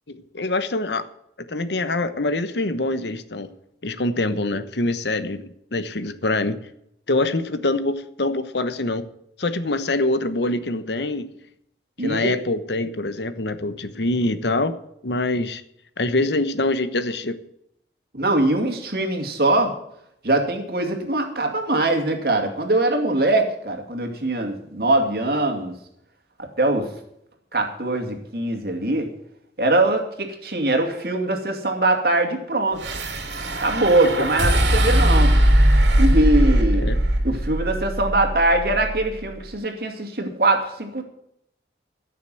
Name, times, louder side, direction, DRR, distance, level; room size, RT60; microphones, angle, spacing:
voice 1, 0.1-1.1 1.5-3.5 3.8-6.6 7.1-9.1 9.4-11.3 12.0-14.8 15.0-15.6 16.0-17.3 36.7-37.0, left 2 dB, 80° left, 11 dB, 1.1 m, -24 dB
voice 2, 12.0-12.3 18.1-19.7 20.2-25.7 26.4-26.9 27.5-29.1 29.6-32.8 33.6-35.3 36.0-36.9 37.2-41.0, right 2 dB, 60° right, 4 dB, 2.5 m, -22 dB
sound 1, 32.8-39.1, right 1 dB, 90° right, 2.6 m, -20 dB
14.5 x 6.7 x 7.8 m, 0.75 s
head